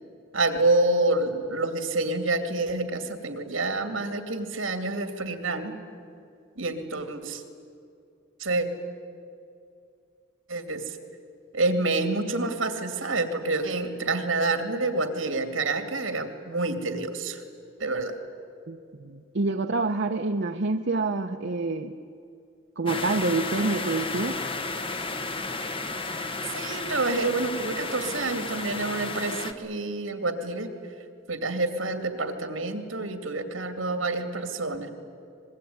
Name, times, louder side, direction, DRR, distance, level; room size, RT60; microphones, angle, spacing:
voice 1, 0.3-5.7 6.6-7.4 8.4-8.7 10.5-11.0 11.5-17.4 17.8-18.1 26.5-30.7 31.3-34.9, right 2 dB, 80° right, 7 dB, 2.6 m, -28 dB
voice 2, 18.7-21.9 22.8-24.4, right 3 dB, 60° right, 5 dB, 0.8 m, -27 dB
sound 1, 22.9-29.5, left 3 dB, 30° left, 1.3 m, -33 dB
24.5 x 21.0 x 9.5 m, 2.5 s
head